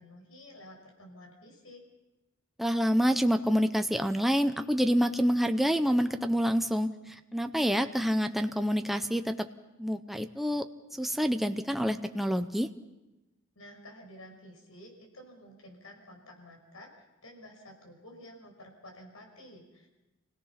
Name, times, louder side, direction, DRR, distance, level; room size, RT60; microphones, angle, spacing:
voice 1, 0.0-1.8 13.6-19.9, left 1 dB, 90° left, 2 dB, 5.8 m, -51 dB
voice 2, 2.6-6.9 7.3-9.5 9.8-10.6 11.0-12.7, equal, ahead, 7 dB, 0.6 m, -27 dB
28.0 x 17.5 x 5.8 m, 1.0 s
head